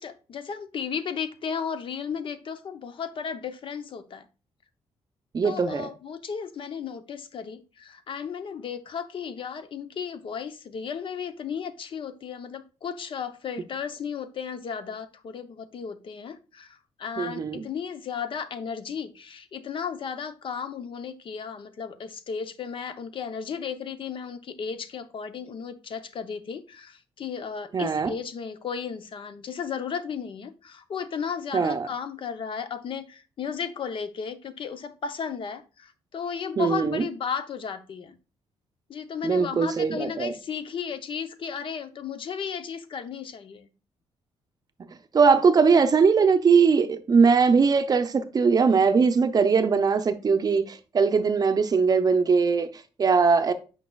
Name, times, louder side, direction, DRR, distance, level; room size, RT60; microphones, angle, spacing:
voice 1, 0.0-4.3 5.4-38.2 38.9-43.7, left 6 dB, 50° left, 0.7 m, -34 dB
voice 2, 5.3-5.9 17.2-17.6 27.7-28.1 31.5-31.9 36.6-37.1 39.2-40.3 45.1-53.5, right 5 dB, 35° right, 0.6 m, -21 dB
8.2 x 5.4 x 2.3 m
cardioid pair, 115°, 11 cm